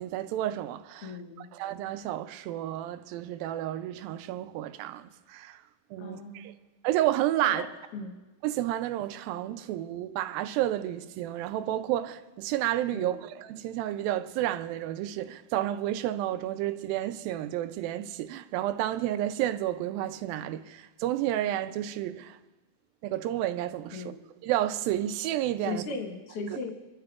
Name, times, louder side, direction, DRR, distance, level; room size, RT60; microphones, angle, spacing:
voice 1, 0.0-1.1 1.5-5.6 5.9-6.5 6.8-7.6 8.4-22.4 23.0-24.0 24.4-25.8, right 13 dB, 80° right, 2.2 m, -31 dB
voice 2, 1.0-1.5 6.0-6.5 7.4-7.7 7.9-8.1 12.9-13.2 23.9-24.2 25.6-26.7, left 3 dB, 60° left, 1.6 m, -37 dB
27.5 x 13.0 x 2.4 m
omnidirectional pair, 4.3 m